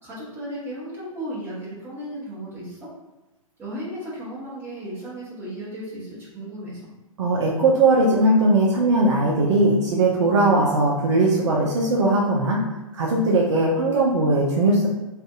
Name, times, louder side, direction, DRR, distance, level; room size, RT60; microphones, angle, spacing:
voice 1, 0.0-2.9 3.6-6.9, right 1 dB, 10° right, -8 dB, 1.0 m, -35 dB
voice 2, 7.2-12.6 12.9-14.9, right 2 dB, 55° right, -2 dB, 0.5 m, -19 dB
2.5 x 2.5 x 2.3 m, 1.0 s
figure-of-eight pair, 115°, 18 cm